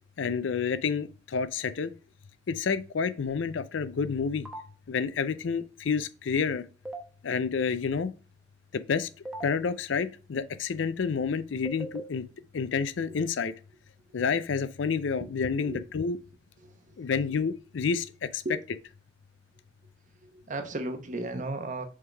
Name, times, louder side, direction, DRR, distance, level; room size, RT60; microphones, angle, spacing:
voice 1, 0.2-1.9 2.5-4.5 4.9-6.6 7.2-8.1 8.7-9.1 9.4-12.3 12.5-13.5 14.1-16.2 17.0-18.1 18.3-18.4, left 5 dB, 70° left, 0.5 m, -29 dB
sound 1, 4.4-4.6 6.8-7.0 9.2-9.5 11.6-12.0, right 1 dB, 5° right, 0.8 m, -37 dB
voice 2, 16.6-17.1 18.4-18.6 20.2-21.8, right 2 dB, 40° right, 1.0 m, -35 dB
6.3 x 3.8 x 4.5 m
head